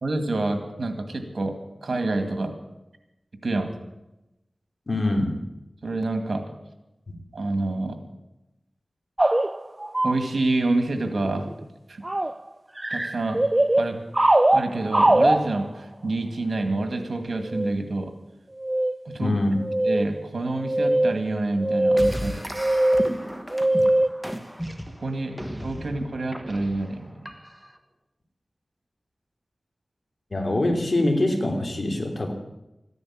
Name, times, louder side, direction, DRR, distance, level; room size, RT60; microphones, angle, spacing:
voice 1, 0.0-2.5 3.4-3.7 5.8-6.4 7.3-8.0 10.0-12.0 12.9-13.4 13.8-14.0 14.5-18.1 19.0-19.4 19.8-22.4 25.0-27.3, right 2 dB, 75° right, 6 dB, 2.2 m, -27 dB
voice 2, 4.9-5.4 7.1-7.2 19.2-19.5 30.3-32.3, left 1 dB, 55° left, 3 dB, 3.1 m, -24 dB
sound 1, 9.2-10.2 11.0-11.6 12.0-12.4 12.8-15.8 17.5-17.8 18.6-19.1 19.6-20.2 20.6-24.1, right 1 dB, 30° right, 0.5 m, -21 dB
sound 2, 22.0-27.8, equal, 5° right, 1.5 m, -35 dB
14.5 x 10.5 x 8.8 m, 0.94 s
wide cardioid pair, 50°, 0 cm